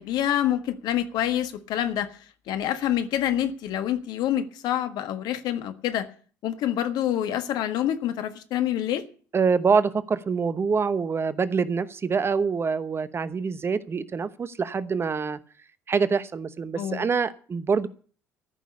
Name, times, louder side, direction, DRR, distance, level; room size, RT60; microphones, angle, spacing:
voice 1, 0.0-2.1 2.5-6.1 6.4-9.0 16.8-17.1, left 11 dB, 60° left, 1.5 m, -27 dB
voice 2, 9.3-15.4 15.9-17.9, right 5 dB, 30° right, 1.0 m, -25 dB
14.0 x 6.2 x 9.6 m
hypercardioid pair, 60°, 8 cm